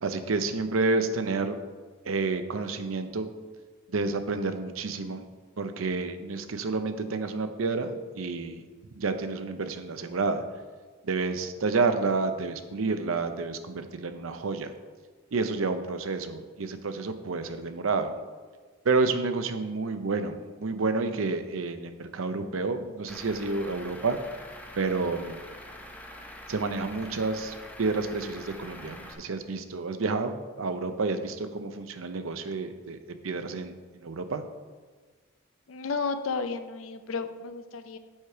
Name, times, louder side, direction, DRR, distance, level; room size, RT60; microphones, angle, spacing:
voice 1, 0.0-1.6 2.1-3.3 3.9-5.2 5.6-8.6 9.0-10.4 11.0-14.7 15.3-18.1 18.8-24.2 24.8-25.4 26.5-33.0 33.2-34.4, right 3 dB, 85° right, 9 dB, 0.6 m, -29 dB
Truck / Idling, 23.1-29.1, left 1 dB, 10° left, 0.7 m, -45 dB
voice 2, 35.7-38.0, left 4 dB, 85° left, 10 dB, 0.5 m, -32 dB
7.3 x 4.9 x 4.6 m, 1.4 s
head